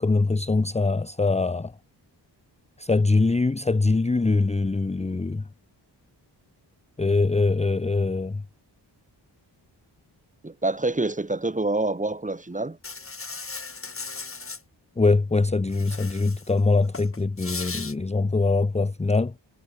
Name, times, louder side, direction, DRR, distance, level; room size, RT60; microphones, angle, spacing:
voice 1, 0.0-1.7 2.8-5.5 7.0-8.4 15.0-19.3, left 3 dB, 15° left, 0.8 m, -23 dB
voice 2, 10.4-12.8, right 2 dB, 15° right, 3.2 m, -26 dB
Insect, 12.8-14.6 15.7-16.5 16.8-17.9, left 4 dB, 30° left, 2.8 m, -37 dB
wide cardioid pair, 130°, 43 cm